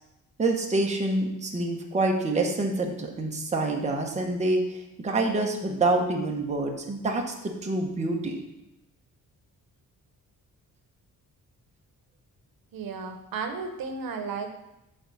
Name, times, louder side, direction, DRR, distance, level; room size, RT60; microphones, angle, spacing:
voice 1, 0.4-4.6 5.0-8.4, right 2 dB, 20° right, 0 dB, 1.0 m, -26 dB
voice 2, 12.7-14.5, right 5 dB, 80° right, 5 dB, 1.0 m, -33 dB
8.8 x 3.8 x 7.0 m, 0.92 s
wide cardioid pair, 175°, 35 cm